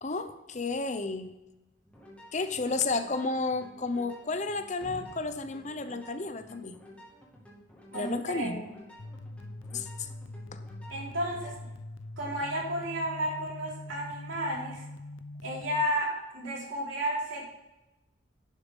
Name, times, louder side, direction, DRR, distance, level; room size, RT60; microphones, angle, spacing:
voice 1, 0.0-1.3 2.3-6.8 7.9-8.6 9.7-10.1 10.5-10.6, left 3 dB, 35° left, 10 dB, 0.7 m, -32 dB
sound 1, 1.8-11.4, equal, 5° left, 2.4 m, -53 dB
sound 2, 4.8-7.0 7.3-7.4, right 1 dB, 50° right, 2.6 m, -50 dB
voice 2, 7.9-8.6 10.9-11.6 12.2-14.8 15.4-17.5, equal, 80° right, -4 dB, 3.9 m, -32 dB
sound 3, 9.0-15.8, left 2 dB, 90° left, 0.6 m, -43 dB
11.5 x 6.8 x 5.3 m, 0.98 s
head